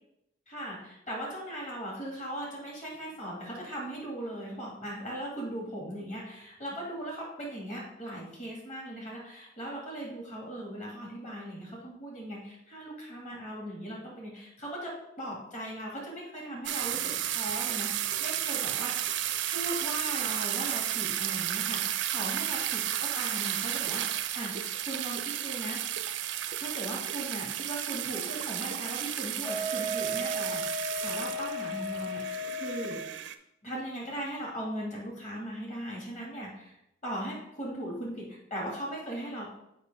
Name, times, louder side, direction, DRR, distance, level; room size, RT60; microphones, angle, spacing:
voice 1, 0.5-19.2 19.5-25.9 26.6-33.0 33.6-36.8 37.0-39.5, right 1 dB, 35° left, -3 dB, 2.0 m, -38 dB
sound 1, 16.6-33.3, right 11 dB, 70° right, 0.4 m, -33 dB
Wind instrument woodwind instrument, 29.4-33.1, equal, 10° left, 0.3 m, -35 dB
6.6 x 5.3 x 3.5 m, 0.82 s
head